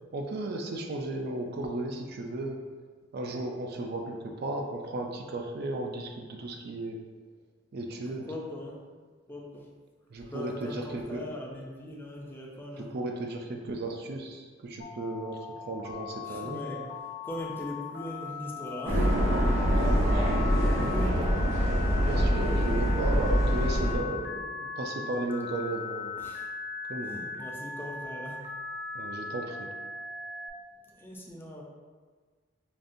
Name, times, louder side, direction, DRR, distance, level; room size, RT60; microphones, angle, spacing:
voice 1, 0.1-2.6 3.1-7.0 7.7-8.3 10.1-11.2 12.8-16.6 19.7-20.0 22.0-26.2 26.9-27.2 28.9-29.7, right 2 dB, 55° right, 2 dB, 0.4 m, -35 dB
voice 2, 8.3-8.8 9.3-9.6 10.3-12.9 16.3-16.9 17.2-19.1 20.6-21.3 26.2-26.4 27.0-28.4 31.0-31.6, left 1 dB, 10° left, -2 dB, 0.5 m, -40 dB
Telephone, 14.8-30.5, left 5 dB, 60° left, 0.7 m, -39 dB
sound 1, 18.9-24.0, equal, 80° right, 0.8 m, -25 dB
5.1 x 2.5 x 2.5 m, 1.5 s
head